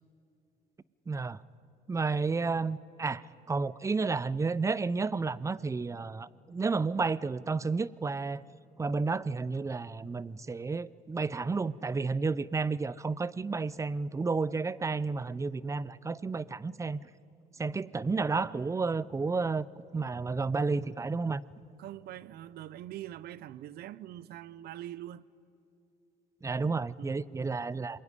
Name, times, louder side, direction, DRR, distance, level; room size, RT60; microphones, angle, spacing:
voice 1, 1.1-1.4 1.9-8.4 8.8-17.1 17.6-19.7 19.9-21.4 26.4-28.0, right 4 dB, 20° right, 0.5 m, -31 dB
voice 2, 21.8-25.3 27.0-27.1, right 13 dB, 70° right, 0.7 m, -43 dB
26.5 x 21.5 x 9.9 m
cardioid pair, 110°, 17 cm